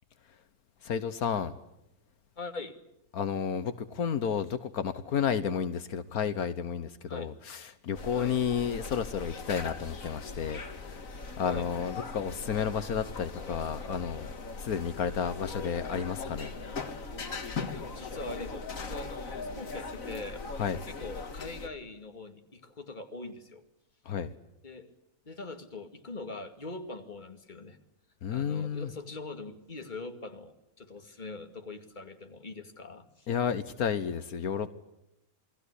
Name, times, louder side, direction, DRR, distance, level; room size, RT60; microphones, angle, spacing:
voice 1, 0.8-1.5 3.1-11.0 11.4-14.3 14.6-16.5 20.6-20.8 24.0-24.3 28.2-28.9 33.3-34.7, left 7 dB, 80° left, 12 dB, 1.6 m, -31 dB
voice 2, 2.4-2.8 7.1-7.3 8.1-8.4 11.4-11.7 16.4-16.6 17.7-20.4 20.9-23.6 24.6-24.9 25.2-27.8 28.3-33.3, left 3 dB, 30° left, 6 dB, 2.5 m, -42 dB
sound 1, 7.9-21.7, left 4 dB, 65° left, 2.3 m, -40 dB
28.5 x 20.5 x 8.3 m, 0.86 s
omnidirectional pair, 1.5 m